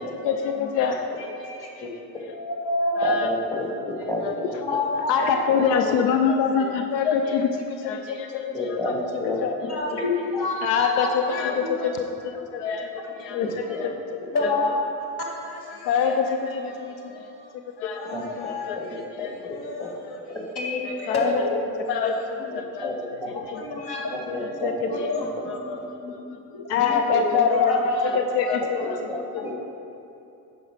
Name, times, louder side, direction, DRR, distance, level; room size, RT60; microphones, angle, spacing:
voice 1, 0.0-1.4 1.7-1.9 2.2-2.3 3.0-3.3 3.7-4.3 5.1-9.0 9.4-9.8 10.6-13.9 14.4-14.5 15.6-17.3 17.8-19.4 20.0-20.2 20.9-21.3 21.9-23.1 23.5-23.6 24.4-24.7 25.5-26.0 26.7-29.0 29.3-29.6, left 6 dB, 85° left, 5 dB, 0.5 m, -26 dB
voice 2, 1.4-1.9 2.3-3.2 3.8-3.9 4.6-5.4 9.7-12.0 13.0-13.1 14.3-14.7 15.3-15.9 16.7-17.5 17.9-19.1 19.5-22.0 22.2-22.3 23.5-24.2 24.6-26.1 26.5-28.2 29.4-29.6, left 2 dB, 50° left, -2 dB, 2.0 m, -29 dB
voice 3, 3.0-3.7 4.1-4.6 5.5-5.6 8.5-9.4 9.9-10.0 13.4-13.8 18.1-18.2 18.9-19.0 19.4-19.9 20.3-20.5 22.4-22.5 22.8-23.1 24.2-25.0 28.1-28.2 28.8-29.5, left 1 dB, 5° left, -2 dB, 2.0 m, -30 dB
9.1 x 5.5 x 5.0 m, 2.8 s
hypercardioid pair, 45°, 47 cm